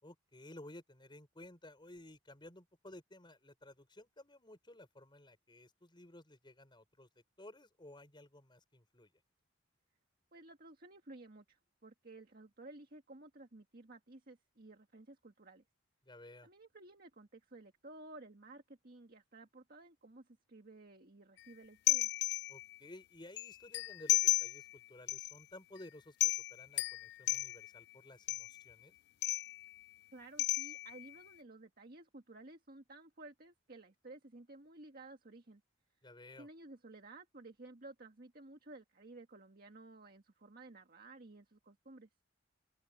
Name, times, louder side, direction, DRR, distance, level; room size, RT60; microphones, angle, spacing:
voice 1, 0.0-7.1 7.4-9.1 16.0-16.5 22.5-28.9 36.0-36.5, left 1 dB, 25° left, 5.3 m, -55 dB
voice 2, 10.3-15.6 16.4-22.1 30.1-35.6 36.4-42.1, right 2 dB, 50° right, 1.7 m, -55 dB
sound 1, 21.9-22.8 23.4-24.8 25.1-25.4 25.8-25.9 26.2-27.8 28.3-28.7 29.2-29.8 30.4-31.2, left 16 dB, 55° left, 0.3 m, -34 dB
open air
head